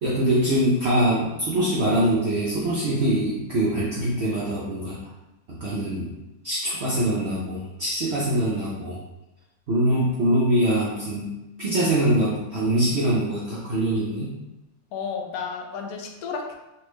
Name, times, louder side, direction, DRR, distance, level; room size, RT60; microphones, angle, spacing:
voice 1, 0.0-5.0 5.5-6.1 6.4-9.0 9.7-11.3 11.6-14.3, right 1 dB, 60° right, -6 dB, 0.7 m, -23 dB
voice 2, 14.9-16.5, left 5 dB, 75° left, 2 dB, 1.0 m, -32 dB
3.3 x 2.5 x 3.1 m, 0.98 s
omnidirectional pair, 1.7 m